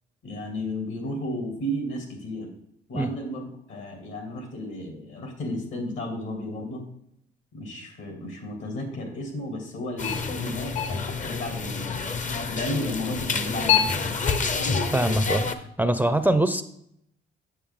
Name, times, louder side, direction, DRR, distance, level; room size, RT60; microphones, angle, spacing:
voice 1, 0.2-2.5 2.9-3.4 3.7-6.8 7.5-12.1 12.5-14.3, left 1 dB, 70° left, 3 dB, 2.6 m, -33 dB
sound 1, 10.0-15.5, left 6 dB, 40° left, 0.8 m, -27 dB
voice 2, 14.9-15.5 15.8-16.6, right 1 dB, 10° right, 10 dB, 0.5 m, -23 dB
8.6 x 6.9 x 3.7 m, 0.74 s
cardioid pair, 90°, 20 cm